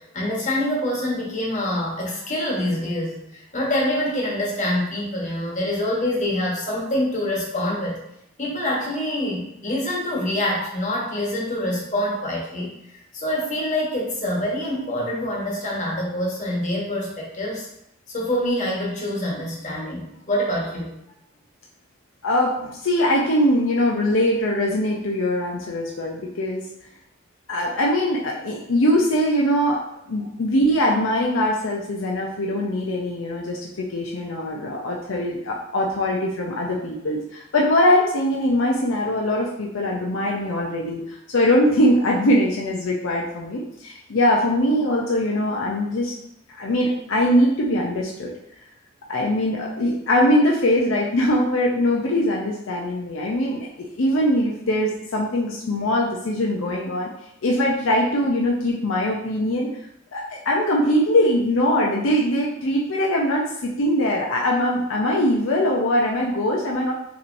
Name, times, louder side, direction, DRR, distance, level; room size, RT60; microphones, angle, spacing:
voice 1, 0.1-8.0 8.4-17.7 18.1-20.9, left 1 dB, 35° left, -3 dB, 1.3 m, -26 dB
voice 2, 22.2-26.7 27.5-29.8 30.1-46.1 46.5-48.3 49.1-57.1 57.4-59.7 60.1-66.9, left 1 dB, 70° left, -2 dB, 0.6 m, -22 dB
5.9 x 3.0 x 2.6 m, 0.80 s
head